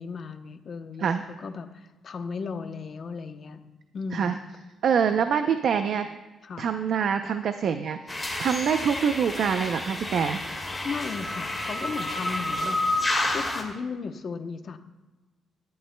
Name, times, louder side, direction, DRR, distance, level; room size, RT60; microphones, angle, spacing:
voice 1, 0.0-3.6 3.9-4.4 6.4-6.7 10.8-13.1 13.3-14.8, left 5 dB, 40° left, 8 dB, 0.8 m, -36 dB
voice 2, 4.8-6.1 6.6-10.4, right 7 dB, 55° right, 8 dB, 0.5 m, -25 dB
sound 1, 8.1-13.6, left 2 dB, 10° left, 1.7 m, -30 dB
18.0 x 12.0 x 2.2 m, 1.2 s
cardioid pair, 155°, 0 cm